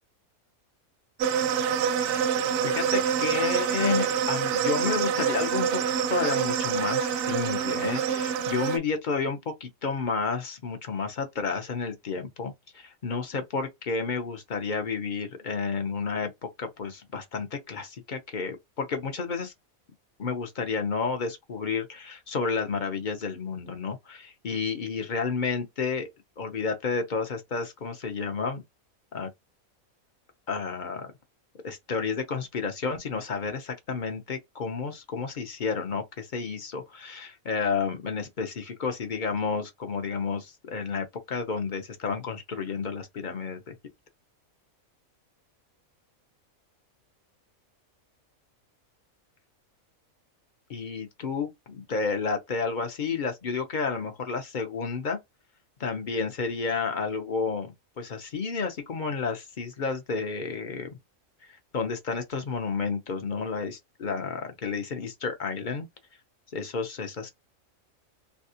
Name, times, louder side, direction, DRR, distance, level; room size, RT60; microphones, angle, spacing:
sound 1, 1.2-8.8, right 8 dB, 65° right, 0.8 m, -26 dB
voice 1, 2.6-5.8 6.1-19.5 20.2-26.1 26.4-28.6 29.1-29.3 30.5-31.1 31.6-43.8 50.7-55.2 55.8-61.0 61.4-65.9 66.5-67.3, left 5 dB, 50° left, 0.6 m, -31 dB
3.4 x 2.3 x 2.7 m
omnidirectional pair, 1.4 m